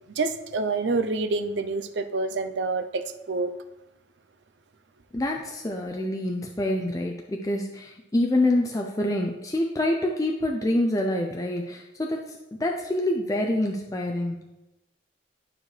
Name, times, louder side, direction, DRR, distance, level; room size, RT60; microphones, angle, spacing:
voice 1, 0.2-3.5, right 3 dB, 70° right, 9 dB, 0.5 m, -27 dB
voice 2, 5.1-14.4, left 1 dB, 20° left, 1 dB, 0.4 m, -26 dB
11.5 x 4.6 x 3.2 m, 1.0 s
head